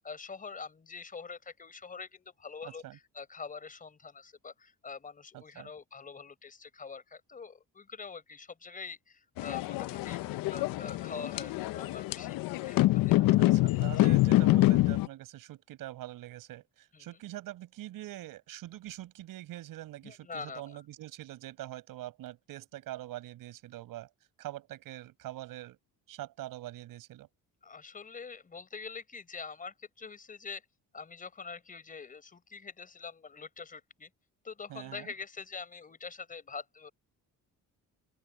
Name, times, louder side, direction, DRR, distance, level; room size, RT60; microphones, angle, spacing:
voice 1, 0.0-10.2 10.5-13.1 13.7-14.1 16.9-17.1 20.0-20.8 27.6-30.6 30.9-34.1 34.4-36.9, left 5 dB, 25° left, 4.9 m, -45 dB
voice 2, 2.6-3.0 5.3-5.7 13.2-24.1 24.4-25.8 26.1-27.3 34.7-35.1, right 15 dB, 80° right, 6.5 m, -44 dB
sound 1, 9.4-15.1, left 17 dB, 85° left, 0.6 m, -26 dB
open air
cardioid pair, 160°, 33 cm